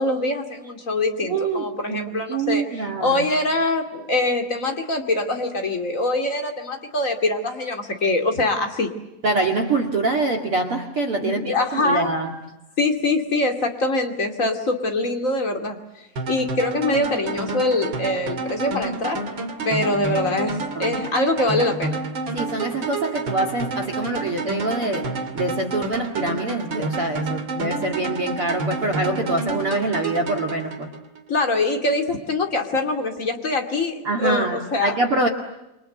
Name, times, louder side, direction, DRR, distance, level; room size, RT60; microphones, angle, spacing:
voice 1, 0.0-8.9 11.2-12.1 12.8-15.8 16.2-19.2 19.6-22.0 31.3-35.0, left 2 dB, 40° left, 4 dB, 1.1 m, -23 dB
voice 2, 1.2-2.0 2.3-3.2 9.2-12.3 20.2-20.4 20.7-21.0 22.3-25.1 25.3-30.9 34.0-35.3, right 2 dB, 50° right, 6 dB, 1.7 m, -25 dB
sound 1, 16.2-31.2, right 3 dB, 35° right, 2.3 m, -29 dB
29.5 x 25.0 x 7.9 m, 0.94 s
omnidirectional pair, 5.7 m